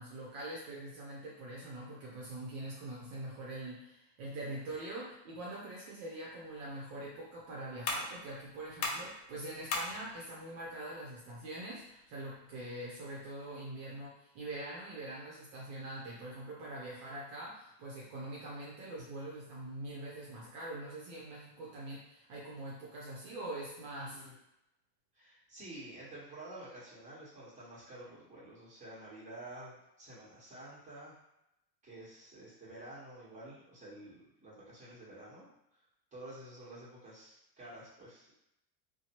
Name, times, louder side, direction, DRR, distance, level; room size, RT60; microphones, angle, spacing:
voice 1, 0.0-24.2, right 1 dB, 50° right, -4 dB, 0.9 m, -44 dB
sound 1, 6.3-13.3, left 3 dB, 60° left, 0.8 m, -43 dB
voice 2, 23.9-24.3 25.1-31.2 31.8-35.5 36.1-38.3, right 1 dB, 15° right, -8 dB, 1.4 m, -50 dB
2.7 x 2.2 x 3.0 m, 0.83 s
hypercardioid pair, 110°, 50 cm